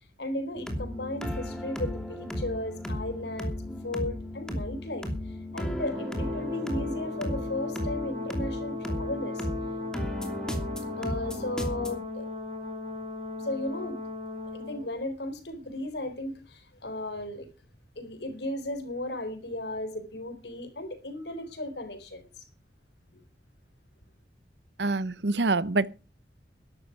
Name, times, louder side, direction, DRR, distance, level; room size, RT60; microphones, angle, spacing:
voice 1, 0.2-5.1 5.5-9.5 11.0-12.3 13.4-14.0 14.5-17.5 18.0-22.3 23.1-23.2, left 1 dB, 70° left, 4.3 m, -35 dB
sound 1, 0.5-12.0, left 1 dB, 5° left, 2.7 m, -34 dB
Brass instrument, 5.9-14.8, left 2 dB, 35° right, 6.0 m, -37 dB
voice 2, 24.8-25.9, right 3 dB, 70° right, 0.9 m, -26 dB
13.5 x 12.0 x 6.0 m
head